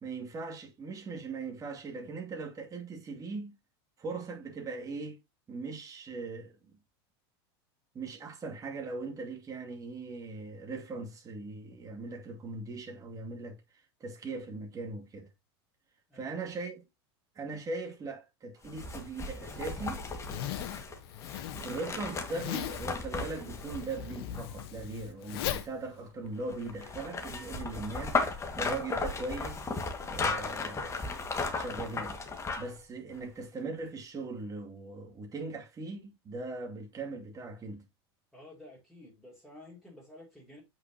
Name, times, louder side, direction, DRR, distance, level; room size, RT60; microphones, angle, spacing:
voice 1, 0.0-3.6 4.0-5.2 5.5-6.6 7.9-13.6 14.0-15.3 16.1-16.8 17.4-20.1 21.6-29.7 30.1-31.1 31.5-32.2 32.6-37.9, right 3 dB, 25° right, 2.5 m, -40 dB
sound 1, 18.6-24.8 26.5-32.8 33.2-33.3, left 3 dB, 20° left, 1.8 m, -36 dB
Zipper (clothing), 19.5-26.9, left 11 dB, 70° left, 1.2 m, -40 dB
voice 2, 38.3-40.6, left 1 dB, ahead, 4.7 m, -52 dB
8.0 x 5.9 x 2.9 m
supercardioid pair, 115°, 13 cm